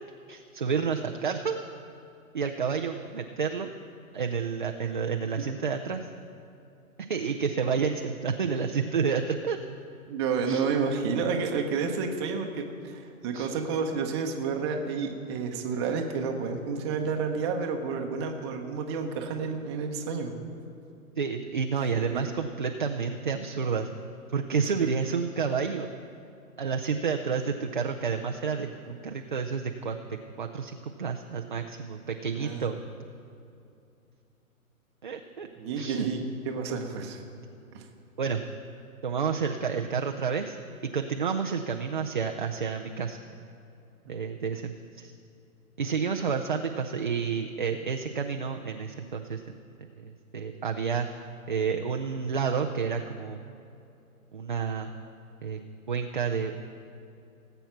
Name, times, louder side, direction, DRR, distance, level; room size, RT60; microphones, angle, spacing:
voice 1, 0.3-1.6 2.3-3.7 4.1-6.1 7.0-9.6 10.5-10.6 13.3-13.5 21.2-23.9 24.3-25.9 26.6-30.0 30.4-32.8 35.0-35.5 35.8-36.1 38.2-38.4 39.0-40.6 40.8-43.2 44.1-45.1 45.8-49.6 50.0-51.1 51.5-53.4 54.3-54.9 55.4-55.6 55.9-56.6, right 6 dB, 35° right, 4 dB, 0.4 m, -30 dB
voice 2, 10.1-20.4 22.1-22.3 24.8-24.9 32.3-32.7 35.6-37.2 37.7-37.9 44.1-44.2, right 5 dB, 20° right, 3 dB, 0.9 m, -30 dB
18.0 x 8.0 x 5.8 m, 2.7 s
hypercardioid pair, 150°, 44 cm